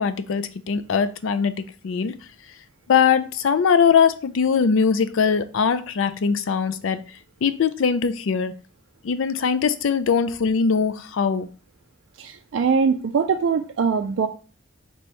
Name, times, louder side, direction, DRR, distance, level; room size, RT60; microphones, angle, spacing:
voice 1, 0.0-2.1 2.9-7.0 7.4-8.5 9.0-11.5, left 6 dB, 80° left, 12 dB, 0.4 m, -21 dB
voice 2, 12.2-14.3, right 5 dB, 65° right, 5 dB, 0.3 m, -22 dB
3.1 x 3.0 x 4.5 m, 0.37 s
head